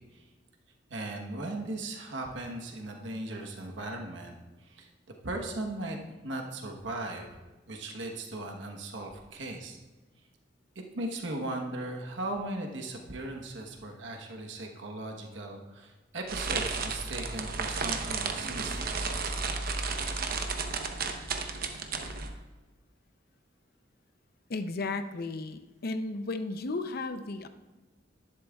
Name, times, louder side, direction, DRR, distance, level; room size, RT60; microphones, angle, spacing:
voice 1, 0.9-4.9 5.2-6.0 6.2-9.8 10.7-19.0, right 2 dB, 75° right, 2 dB, 1.2 m, -38 dB
sound 1, 16.3-22.3, right 4 dB, 50° right, 0.9 m, -33 dB
voice 2, 24.5-27.5, left 3 dB, 55° left, 9 dB, 0.6 m, -34 dB
11.0 x 11.0 x 2.4 m, 1.2 s
head